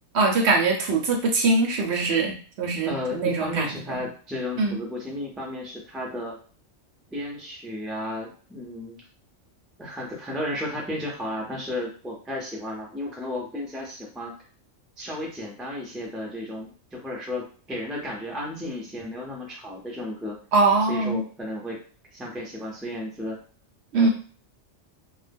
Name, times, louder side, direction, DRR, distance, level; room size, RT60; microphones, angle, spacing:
voice 1, 0.1-4.0 4.6-4.8 20.5-21.2 23.9-24.1, right 3 dB, 65° right, 1 dB, 0.8 m, -22 dB
voice 2, 2.9-6.4 7.1-9.0 9.8-14.3 15.0-20.4 20.9-21.8 22.1-23.4 23.9-24.1, left 1 dB, ahead, -2 dB, 0.3 m, -33 dB
2.2 x 2.1 x 3.4 m, 0.42 s
omnidirectional pair, 1.3 m